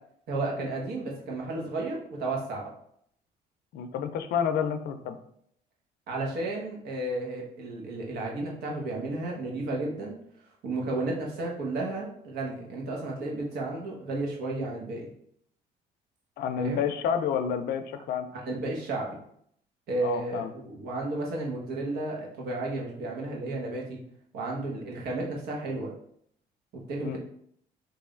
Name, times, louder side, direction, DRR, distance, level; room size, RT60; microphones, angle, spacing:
voice 1, 0.3-2.7 6.1-10.2 10.6-15.1 16.6-16.8 18.3-19.2 19.9-24.0 24.3-25.9 26.9-27.2, right 2 dB, 75° right, -2 dB, 1.2 m, -33 dB
voice 2, 3.7-5.2 16.4-18.3 20.0-20.5 27.0-27.2, left 7 dB, 70° left, 9 dB, 0.5 m, -29 dB
3.2 x 2.7 x 3.7 m, 0.68 s
cardioid pair, 110°, 17 cm